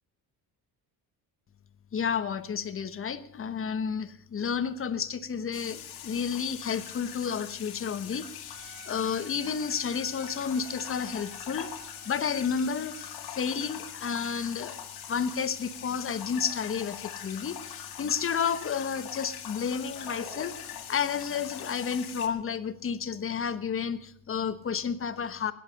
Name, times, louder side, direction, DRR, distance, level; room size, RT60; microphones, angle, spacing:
voice 1, 1.9-11.7 12.0-14.7 15.1-25.5, left 6 dB, 35° left, 12 dB, 1.2 m, -31 dB
sound 1, 5.5-22.3, left 9 dB, 80° left, 2.6 m, -42 dB
Trumpet, 8.5-13.4, right 9 dB, 60° right, 3.0 m, -53 dB
sound 2, 19.7-21.3, right 3 dB, 30° right, 2.5 m, -49 dB
18.0 x 10.5 x 6.7 m, 0.65 s
cardioid pair, 125°, 37 cm